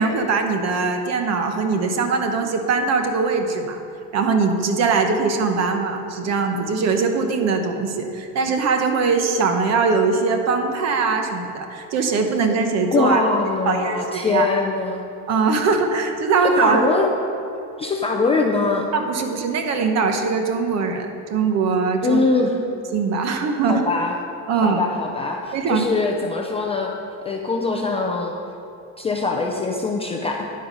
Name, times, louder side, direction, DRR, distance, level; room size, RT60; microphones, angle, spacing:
voice 1, 0.0-3.8 4.1-13.2 13.7-14.5 15.3-16.8 18.9-22.2 22.9-23.8 24.5-24.8 25.5-25.9, right 4 dB, 40° right, 5 dB, 1.0 m, -21 dB
voice 2, 12.9-15.0 16.6-17.1 17.8-18.9 22.0-22.6 23.7-24.2 24.5-26.9 27.2-28.4 29.0-30.5, left 3 dB, 15° left, 0 dB, 0.4 m, -22 dB
10.0 x 7.7 x 5.4 m, 2.9 s
cardioid pair, 170°, 40 cm